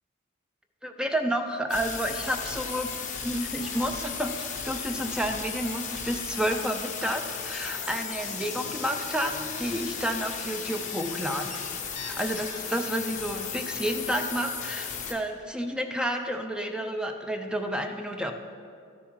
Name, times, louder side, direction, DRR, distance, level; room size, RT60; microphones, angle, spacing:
voice 1, 0.8-2.9 3.2-11.7 11.9-18.3, equal, 5° right, 5 dB, 0.5 m, -30 dB
sound 1, 1.7-15.1, left 6 dB, 35° left, 0.9 m, -35 dB
12.5 x 6.9 x 4.8 m, 2.3 s
head